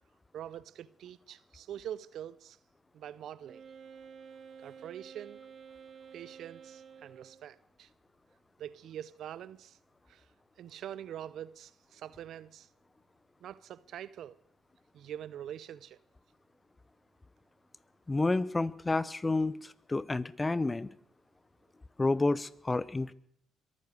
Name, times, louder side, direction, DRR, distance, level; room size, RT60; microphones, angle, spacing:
voice 1, 0.3-2.6 2.9-3.6 4.6-5.4 6.1-7.9 8.6-9.8 10.1-10.3 10.6-12.7 13.4-14.3 14.9-16.0, right 10 dB, 70° right, 0.6 m, -44 dB
Wind instrument woodwind instrument, 3.4-7.5, right 6 dB, 55° right, 2.7 m, -51 dB
voice 2, 18.1-19.6 19.9-20.9 22.0-23.1, left 2 dB, 25° left, 0.8 m, -29 dB
22.5 x 9.7 x 6.6 m
supercardioid pair, 55°, 0 cm